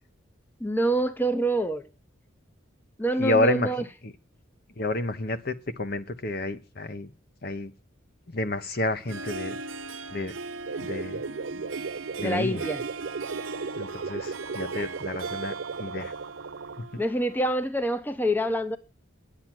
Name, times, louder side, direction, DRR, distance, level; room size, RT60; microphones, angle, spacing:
voice 1, 0.6-1.8 3.0-3.8 12.2-12.8 17.0-18.8, right 1 dB, 10° left, 0.7 m, -26 dB
voice 2, 3.2-3.7 4.0-4.1 4.8-7.1 7.4-7.7 8.3-9.6 10.1-10.3 10.8-11.2 11.5-11.6 12.2-12.6 13.8-16.1, left 2 dB, 50° left, 1.0 m, -29 dB
Harp, 8.9-17.6, right 3 dB, 85° right, 1.0 m, -39 dB
sound 1, 10.7-16.8, right 4 dB, 65° right, 0.5 m, -36 dB
10.0 x 8.2 x 6.1 m
head